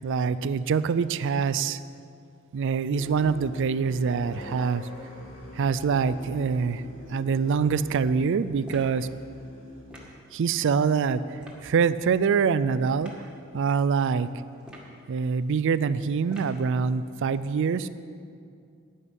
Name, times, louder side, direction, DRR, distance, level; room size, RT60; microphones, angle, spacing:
voice 1, 0.0-1.8 2.5-4.9 5.5-6.8 7.1-9.1 10.3-13.3 13.5-14.3 15.1-17.9, right 5 dB, 60° right, 15 dB, 0.4 m, -25 dB
sound 1, 2.9-9.8, left 1 dB, 70° left, 2.5 m, -43 dB
sound 2, 8.6-9.0 9.9-10.2 11.4-11.6 13.0-13.2 14.6-15.0 16.3-16.6, equal, 5° right, 1.8 m, -46 dB
11.0 x 9.8 x 5.6 m, 2.4 s
head